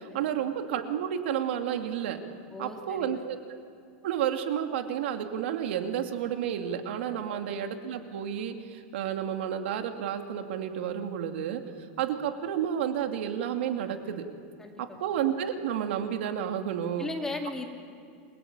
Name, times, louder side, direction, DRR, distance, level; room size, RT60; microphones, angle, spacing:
voice 1, 0.0-2.2 2.6-3.4 4.0-11.6 12.0-14.3 14.8-17.1, right 9 dB, 75° right, 5 dB, 2.5 m, -31 dB
voice 2, 2.5-3.2 7.3-7.4 14.6-15.0 17.0-17.7, left 2 dB, 10° left, 2 dB, 2.5 m, -37 dB
29.0 x 22.0 x 9.0 m, 2.4 s
supercardioid pair, 165°, 6 cm